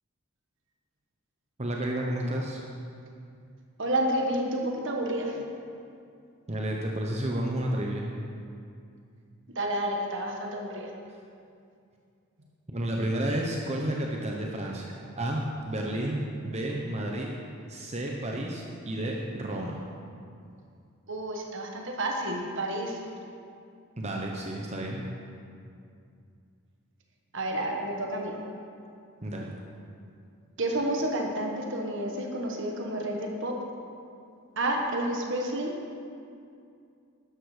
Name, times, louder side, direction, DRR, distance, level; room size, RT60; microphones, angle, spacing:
voice 1, 1.6-2.6 6.5-8.1 12.7-17.3 17.7-19.8 24.0-25.0 29.2-29.5, right 1 dB, 30° right, -1 dB, 1.0 m, -31 dB
voice 2, 3.8-5.4 9.5-10.9 21.1-23.0 27.3-28.3 30.6-33.6 34.6-35.8, right 1 dB, 60° right, 1 dB, 1.5 m, -30 dB
12.5 x 11.5 x 5.1 m, 2.5 s
head